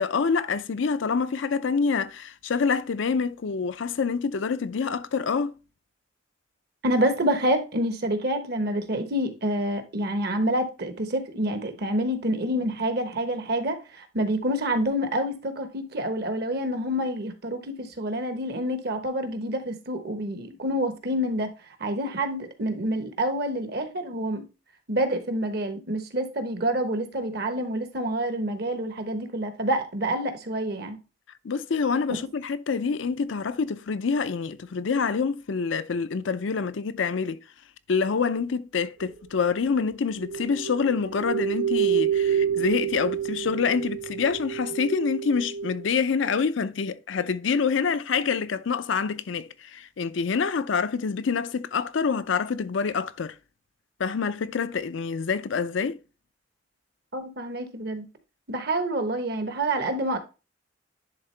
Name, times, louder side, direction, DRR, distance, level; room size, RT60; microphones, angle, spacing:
voice 1, 0.0-5.5 31.4-37.4 37.9-53.4 54.0-56.0, left 5 dB, 75° left, 0.5 m, -26 dB
voice 2, 6.8-21.5 21.8-24.4 24.9-31.0 57.1-58.0 58.5-60.2, right 1 dB, 55° right, 1.1 m, -27 dB
sound 1, 40.2-45.9, right 8 dB, 75° right, 0.5 m, -28 dB
10.5 x 3.6 x 3.2 m
head